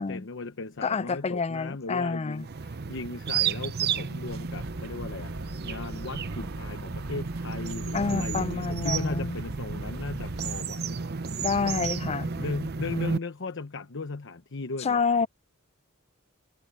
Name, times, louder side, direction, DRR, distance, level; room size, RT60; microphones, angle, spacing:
voice 1, 0.0-5.3 5.6-11.4 12.4-15.3, left 3 dB, 60° left, 1.0 m, -37 dB
voice 2, 0.8-2.4 7.9-9.4 11.4-12.3 14.8-15.3, left 4 dB, 30° left, 0.4 m, -28 dB
sound 1, 2.4-13.2, right 5 dB, 50° right, 0.7 m, -32 dB
sound 2, 4.3-10.6, right 1 dB, 90° right, 3.8 m, -41 dB
head